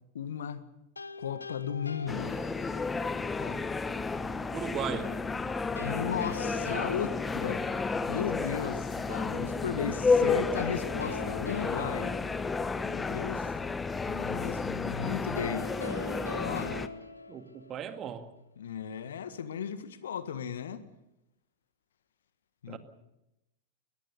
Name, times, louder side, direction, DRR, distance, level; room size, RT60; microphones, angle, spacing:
voice 1, 0.1-0.6 1.2-2.4 3.4-3.6 5.8-7.6 8.1-12.2 12.8-13.5 14.1-15.7 16.4-16.8 18.6-20.8 22.6-22.8, left 8 dB, 65° left, 1.5 m, -36 dB
sound 1, 1.0-3.1 5.8-8.2 10.6-13.1 15.4-18.2, left 3 dB, 80° left, 1.2 m, -42 dB
sound 2, 2.1-16.9, left 4 dB, 15° left, 1.1 m, -31 dB
voice 2, 4.5-5.1 17.3-18.3 22.7-22.8, right 8 dB, 30° right, 2.0 m, -37 dB
22.5 x 20.5 x 6.8 m
figure-of-eight pair, 90°, 0 cm